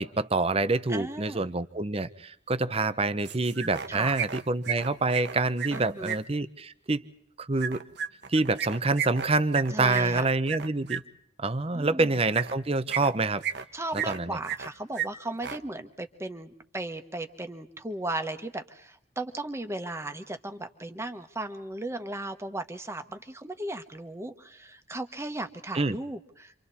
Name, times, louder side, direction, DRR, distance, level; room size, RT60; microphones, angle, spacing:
voice 1, 0.0-7.0 7.4-7.8 8.3-11.0 11.4-13.4 14.1-14.4 25.7-26.0, right 3 dB, 30° right, 12 dB, 0.8 m, -27 dB
voice 2, 0.9-1.5 3.9-4.2 5.7-6.2 9.7-10.3 11.7-12.2 13.7-26.5, right 2 dB, 15° right, 8 dB, 1.4 m, -36 dB
sound 1, 3.2-3.9 4.1-6.2 7.6-11.0 12.3-12.5 12.9-13.6 13.9-14.7 14.9-15.1 15.3-15.6, right 9 dB, 55° right, 1.1 m, -33 dB
29.5 x 25.5 x 4.2 m, 0.72 s
head